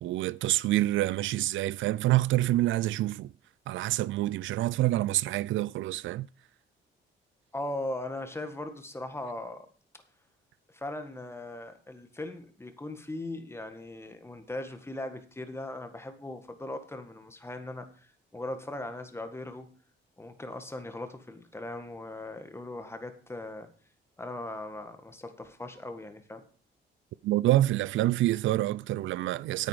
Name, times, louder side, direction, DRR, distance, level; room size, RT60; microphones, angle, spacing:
voice 1, 0.0-3.3 3.7-6.3 27.2-29.7, right 15 dB, 75° right, 0.4 m, -27 dB
voice 2, 7.5-9.7 10.7-17.9 18.3-19.7 20.2-23.7 24.2-26.4, left 1 dB, 10° left, 1.7 m, -39 dB
9.3 x 9.0 x 5.0 m
cardioid pair, 90°, 20 cm